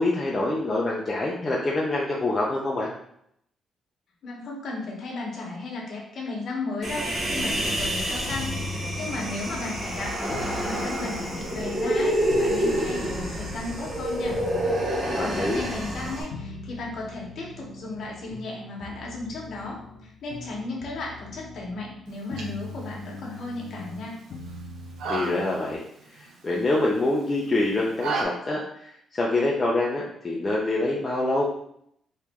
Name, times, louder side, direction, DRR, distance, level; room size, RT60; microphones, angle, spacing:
voice 1, 0.0-2.9 15.1-15.6 25.1-25.8 26.1-31.4, left 2 dB, 20° left, -4 dB, 0.4 m, -26 dB
voice 2, 4.2-14.4 14.9-24.2, left 2 dB, 45° left, -2 dB, 1.0 m, -35 dB
Human voice, 6.8-16.2, equal, 40° right, 1.0 m, -28 dB
sound 1, 7.3-25.8, left 2 dB, 85° left, 0.6 m, -41 dB
sound 2, 22.1-28.2, right 4 dB, 70° right, 0.7 m, -36 dB
3.2 x 2.9 x 3.5 m, 0.71 s
cardioid pair, 180°, 0 cm